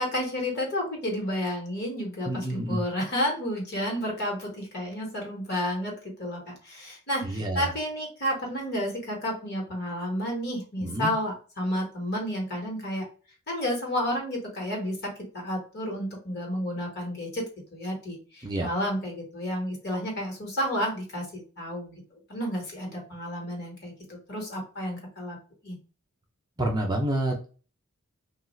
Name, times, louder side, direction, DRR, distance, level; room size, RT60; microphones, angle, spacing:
voice 1, 0.0-13.1 13.5-17.4 17.7-22.0 22.3-25.4 25.6-25.8, equal, 45° left, 0 dB, 1.2 m, -31 dB
voice 2, 2.3-2.8 7.2-7.7 10.8-11.1 18.4-18.7 26.6-27.5, right 1 dB, 20° right, 0 dB, 0.5 m, -28 dB
3.1 x 2.4 x 3.1 m, 0.37 s
head